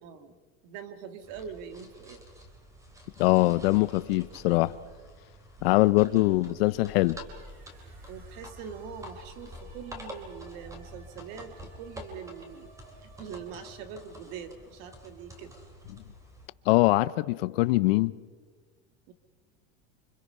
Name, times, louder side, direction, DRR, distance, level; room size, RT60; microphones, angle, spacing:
voice 1, 0.0-0.3 0.6-2.2 6.1-6.3 8.1-12.7 13.0-15.5 19.1-19.2, right 7 dB, 50° right, 1.9 m, -43 dB
sound 1, 1.2-16.5, equal, 10° right, 3.0 m, -48 dB
voice 2, 3.2-4.8 5.6-7.2 16.7-18.1, left 20 dB, 65° left, 0.7 m, -23 dB
sound 2, 6.2-15.9, right 3 dB, 65° right, 6.6 m, -59 dB
29.5 x 25.0 x 5.6 m
supercardioid pair, 165°, 32 cm